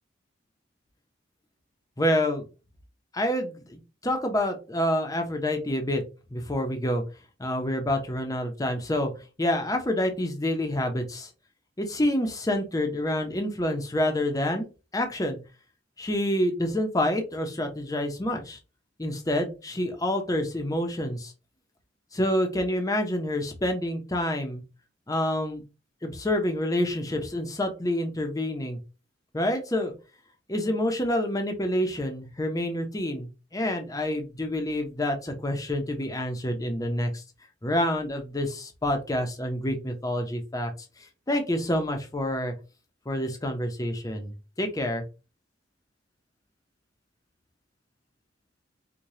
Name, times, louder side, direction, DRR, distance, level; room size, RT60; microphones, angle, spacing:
voice 1, 2.0-2.4 3.1-6.0 6.3-7.0 7.4-9.1 9.4-11.3 11.8-14.7 14.9-15.4 16.0-18.6 19.0-21.3 22.1-24.6 25.1-25.6 26.0-28.8 29.3-29.9 30.5-37.2 37.6-40.7 41.3-42.5 43.1-45.0, left 1 dB, 20° left, 4 dB, 0.7 m, -27 dB
4.8 x 2.3 x 2.7 m, 0.31 s
head